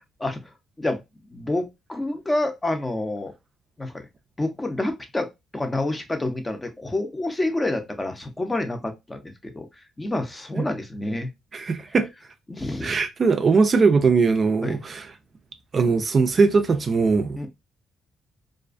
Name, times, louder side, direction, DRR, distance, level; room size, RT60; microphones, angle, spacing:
voice 1, 0.2-0.5 0.8-1.0 1.3-3.3 3.8-4.1 4.4-11.3 12.5-13.0 14.6-14.8 17.4-17.5, left 2 dB, 20° left, 0.6 m, -28 dB
voice 2, 11.5-12.1 12.8-15.1 15.7-17.4, right 4 dB, 40° right, 0.3 m, -20 dB
2.4 x 2.2 x 2.4 m
cardioid pair, 90°, 0 cm